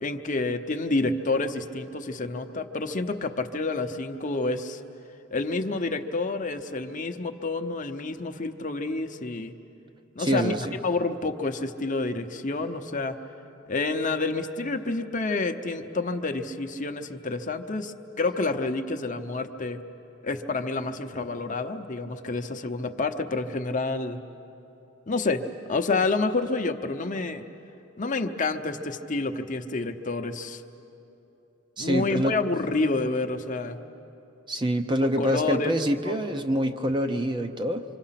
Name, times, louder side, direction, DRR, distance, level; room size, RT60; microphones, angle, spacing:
voice 1, 0.0-4.8 5.3-9.5 10.2-10.5 10.8-13.2 13.7-19.8 20.2-24.2 25.1-25.4 25.7-27.5 28.0-30.6 31.8-33.8 35.2-35.7 36.0-36.4, left 3 dB, 40° left, 6 dB, 0.8 m, -29 dB
voice 2, 10.2-10.7 31.8-32.4 34.5-37.8, equal, 25° right, 6 dB, 0.7 m, -26 dB
26.5 x 25.5 x 5.8 m, 3.0 s
head